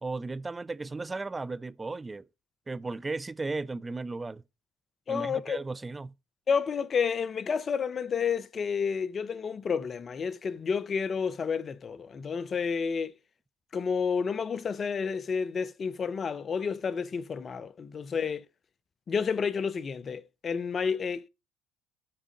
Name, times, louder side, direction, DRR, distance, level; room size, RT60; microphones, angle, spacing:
voice 1, 0.0-2.2 2.7-4.4 5.1-6.1, right 3 dB, 20° right, 0.4 m, -35 dB
voice 2, 5.1-5.6 6.5-13.1 13.7-18.4 19.1-21.3, left 6 dB, 40° left, 0.5 m, -30 dB
8.7 x 3.7 x 5.1 m
hypercardioid pair, 65°, 0 cm